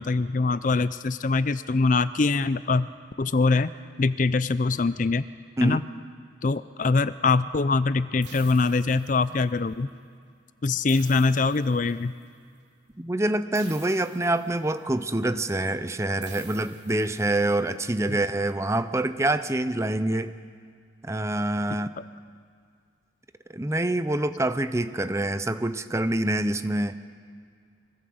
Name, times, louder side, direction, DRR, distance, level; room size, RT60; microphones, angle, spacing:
voice 1, 0.0-2.9 3.2-3.7 4.0-5.3 5.6-5.8 6.4-9.9 10.6-12.1, left 3 dB, 40° left, 15 dB, 0.5 m, -23 dB
sound 1, 8.2-9.6 10.9-12.2 13.5-14.9 16.2-17.6, right 7 dB, 60° right, 3.7 m, -48 dB
voice 2, 13.0-20.3 21.0-21.9 23.5-26.9, right 1 dB, 15° right, 11 dB, 0.6 m, -26 dB
24.0 x 15.5 x 7.9 m, 2.2 s
head